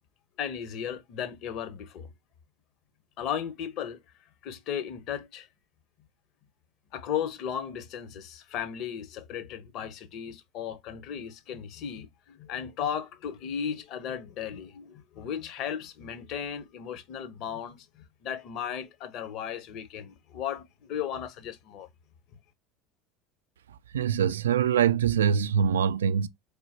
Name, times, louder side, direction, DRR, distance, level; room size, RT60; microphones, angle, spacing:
voice 1, 0.4-2.1 3.2-4.0 4.4-5.5 6.9-17.9 18.2-21.9, left 8 dB, 50° left, 0.9 m, -35 dB
voice 2, 23.9-26.3, right 8 dB, 75° right, 0.3 m, -24 dB
4.2 x 3.6 x 2.9 m
figure-of-eight pair, 75°, 0 cm